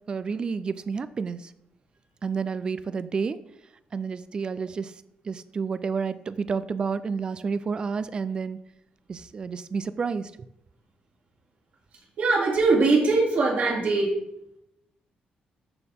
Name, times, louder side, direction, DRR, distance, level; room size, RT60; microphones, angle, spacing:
voice 1, 0.1-1.5 2.2-3.4 3.9-4.9 5.2-8.6 9.1-10.3, right 5 dB, 30° right, 14 dB, 0.3 m, -30 dB
voice 2, 12.2-14.1, right 3 dB, 55° right, -3 dB, 2.4 m, -21 dB
12.5 x 4.2 x 3.5 m, 0.81 s
wide cardioid pair, 170°, 3 cm